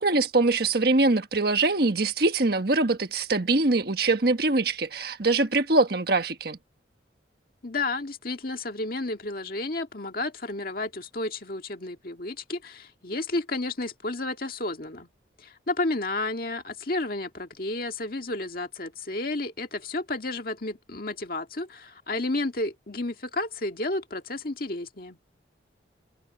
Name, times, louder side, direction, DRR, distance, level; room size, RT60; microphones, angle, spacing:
voice 1, 0.0-6.6, right 2 dB, 55° right, 1.4 m, -23 dB
voice 2, 7.6-15.1 15.4-25.2, left 2 dB, 50° left, 1.9 m, -31 dB
head